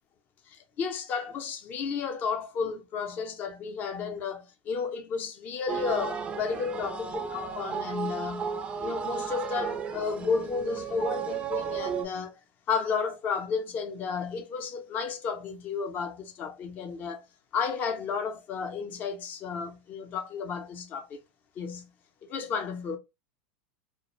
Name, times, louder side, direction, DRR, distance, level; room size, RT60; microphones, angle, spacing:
voice 1, 0.5-8.5 8.8-12.4 12.7-17.2 17.5-21.2 21.6-21.9 22.3-23.0, left 5 dB, 35° left, 0.5 m, -32 dB
sound 1, 5.7-12.1, right 7 dB, 20° right, 0.3 m, -34 dB
2.5 x 2.0 x 2.9 m
supercardioid pair, 125°, 5 cm